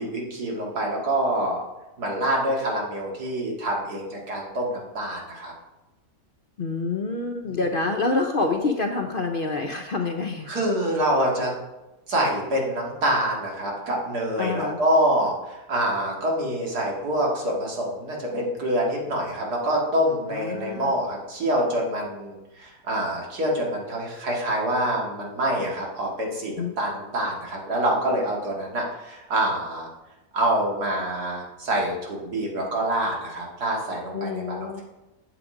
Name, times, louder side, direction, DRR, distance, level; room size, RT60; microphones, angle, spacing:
voice 1, 0.0-1.6 2.0-5.5 7.4-7.6 10.5-11.5 12.1-29.9 30.3-34.8, right 1 dB, 85° right, -2 dB, 2.7 m, -26 dB
voice 2, 6.6-10.5 14.4-14.8 20.3-20.9 26.6-26.7 34.1-34.8, left 3 dB, 45° left, 3 dB, 0.7 m, -27 dB
8.9 x 7.0 x 4.9 m, 1.0 s
omnidirectional pair, 1.6 m